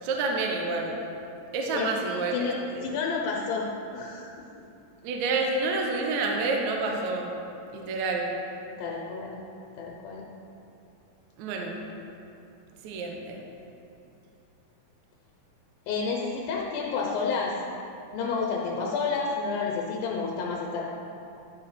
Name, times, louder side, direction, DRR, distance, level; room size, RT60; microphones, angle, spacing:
voice 1, 0.0-1.0 1.5-2.8 5.0-7.3 7.7-8.3 11.4-11.8 12.8-13.4, right 3 dB, 70° right, 1 dB, 1.9 m, -28 dB
voice 2, 1.7-2.5 2.8-3.7 3.9-4.3 4.6-4.7 8.8-9.4 9.8-10.3 15.9-17.5 18.1-20.8, left 5 dB, 90° left, -2 dB, 2.6 m, -30 dB
11.5 x 4.3 x 5.7 m, 2.8 s
omnidirectional pair, 4.0 m